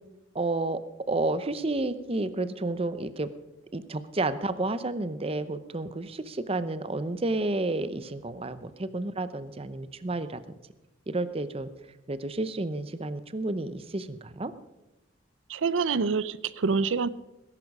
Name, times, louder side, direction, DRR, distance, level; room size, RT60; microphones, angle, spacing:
voice 1, 0.3-0.8 1.1-3.3 3.7-10.4 11.1-11.7 12.1-14.5, right 2 dB, 30° right, 13 dB, 0.7 m, -31 dB
voice 2, 15.5-17.1, right 5 dB, 90° right, 17 dB, 0.5 m, -26 dB
18.5 x 11.0 x 5.3 m, 0.94 s
head